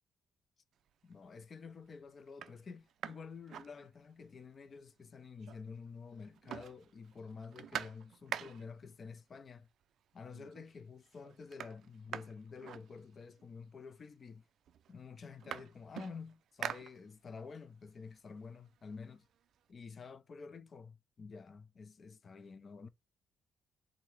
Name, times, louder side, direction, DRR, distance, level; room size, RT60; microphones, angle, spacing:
sound 1, 0.9-1.3 1.8-1.9 2.3-4.4 4.7-4.8 5.0-5.9 6.1-8.9 9.8-9.9 10.3-10.8 11.0-13.5 14.3-14.4 14.7-17.5 17.9-19.6, right 9 dB, 70° right, 0.3 m, -46 dB
voice 1, 1.0-9.7 10.1-14.5 14.9-19.3 19.7-22.9, left 5 dB, 45° left, 0.5 m, -49 dB
3.8 x 2.8 x 3.1 m
cardioid pair, 90°, 0 cm